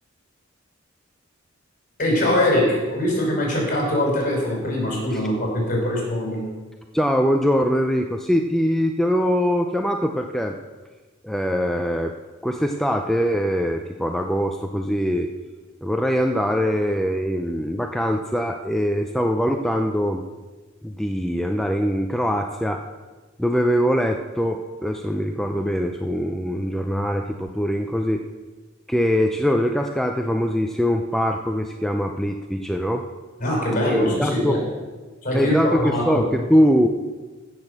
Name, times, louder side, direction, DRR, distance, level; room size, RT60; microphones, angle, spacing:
voice 1, 2.0-6.4 33.4-34.6 35.2-36.3, left 1 dB, 45° left, -2 dB, 5.1 m, -22 dB
voice 2, 6.9-10.6 11.2-12.2 12.4-15.3 15.8-20.2 20.8-22.8 23.4-28.2 28.9-33.0 33.8-34.6 35.3-36.9, equal, ahead, 3 dB, 0.5 m, -22 dB
16.0 x 6.3 x 6.6 m, 1.3 s
head